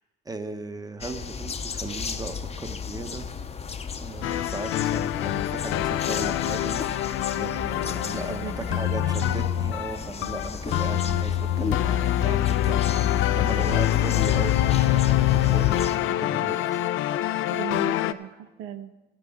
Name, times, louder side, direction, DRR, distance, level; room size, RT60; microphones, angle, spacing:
voice 1, 0.2-3.3 4.0-16.8, right 3 dB, 20° right, 8 dB, 0.9 m, -37 dB
sound 1, 1.0-16.0, left 6 dB, 30° left, 0.6 m, -35 dB
sound 2, 4.2-18.1, left 13 dB, 85° left, 0.4 m, -25 dB
voice 2, 8.1-8.6 8.9-9.5 13.9-14.3 17.5-18.9, right 9 dB, 90° right, 11 dB, 0.6 m, -38 dB
15.0 x 11.0 x 3.6 m, 1.2 s
cardioid pair, 90°, 20 cm